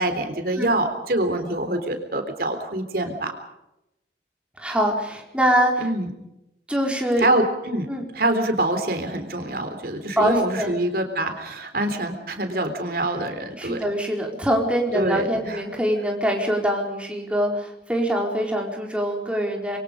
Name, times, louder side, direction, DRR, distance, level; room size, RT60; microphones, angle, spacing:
voice 1, 0.0-3.3 5.8-6.1 7.2-7.9 8.1-13.8 14.9-15.6, right 1 dB, 55° right, 7 dB, 3.9 m, -25 dB
voice 2, 4.6-5.9 6.7-7.3 7.9-8.1 10.2-10.7 13.6-19.8, equal, 5° right, 0 dB, 4.5 m, -24 dB
26.0 x 23.5 x 5.3 m, 0.87 s
head